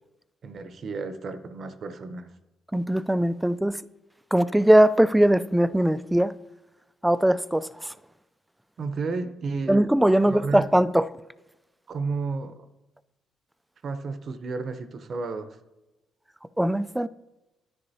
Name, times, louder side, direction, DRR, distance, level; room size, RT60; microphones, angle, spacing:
voice 1, 0.4-2.3 8.8-9.8 10.2-10.7 11.9-12.7 13.8-15.6, right 4 dB, 55° right, 0.7 m, -32 dB
voice 2, 2.7-3.8 4.3-6.3 7.0-7.7 9.7-11.0 16.6-17.1, right 1 dB, 5° right, 0.3 m, -20 dB
11.0 x 9.9 x 2.8 m
cardioid pair, 90°, 0 cm